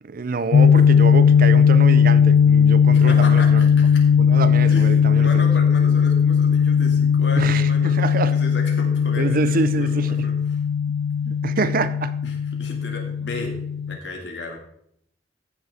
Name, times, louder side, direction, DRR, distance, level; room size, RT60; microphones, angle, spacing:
voice 1, 0.0-3.7 4.2-5.5 7.4-8.3 9.2-10.3 11.2-12.2, right 4 dB, 50° right, 0.5 m, -26 dB
sound 1, 0.5-14.0, left 7 dB, 85° left, 0.3 m, -17 dB
voice 2, 2.9-4.0 4.7-10.6 12.2-13.6 13.9-14.6, left 2 dB, 70° left, 2.3 m, -35 dB
14.5 x 6.5 x 3.6 m
head